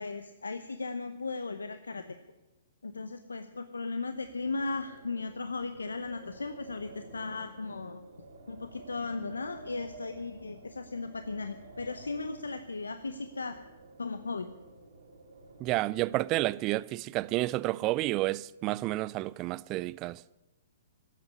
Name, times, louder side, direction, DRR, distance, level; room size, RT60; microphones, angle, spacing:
voice 1, 0.0-2.1 2.8-8.0 8.5-13.6 14.0-14.5, left 3 dB, 90° left, 0.8 m, -36 dB
Wind, 4.0-16.6, right 2 dB, 70° right, 3.1 m, -52 dB
voice 2, 15.6-20.2, right 18 dB, 30° right, 0.4 m, -30 dB
14.5 x 8.4 x 9.6 m
hypercardioid pair, 130°, 0 cm